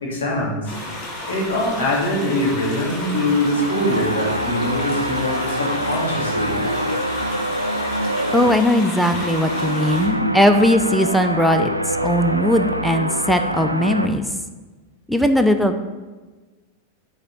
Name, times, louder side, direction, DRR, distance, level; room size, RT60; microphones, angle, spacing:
voice 1, 0.0-0.7 1.3-6.6, left 1 dB, 65° left, -3 dB, 2.4 m, -23 dB
sound 1, 0.6-10.1, left 1 dB, 35° left, 2.4 m, -32 dB
sound 2, 3.0-14.1, equal, 85° right, 0.5 m, -25 dB
voice 2, 8.3-14.2 15.1-15.8, equal, ahead, 7 dB, 0.5 m, -19 dB
8.9 x 4.7 x 5.4 m, 1.2 s
figure-of-eight pair, 90°, 0 cm